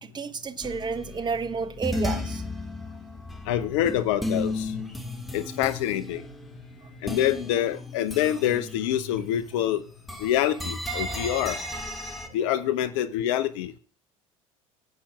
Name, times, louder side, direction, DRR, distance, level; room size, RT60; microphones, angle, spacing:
voice 1, 0.0-2.4 11.2-11.3 12.3-12.4, right 5 dB, 25° right, 0.9 m, -31 dB
sound 1, 0.6-9.7 9.9-12.3, left 1 dB, ahead, 1.7 m, -35 dB
voice 2, 3.5-4.8 5.3-6.2 7.0-9.8 10.2-11.6 12.3-13.8, left 11 dB, 60° left, 0.6 m, -26 dB
16.5 x 8.5 x 2.4 m
figure-of-eight pair, 65°, 18 cm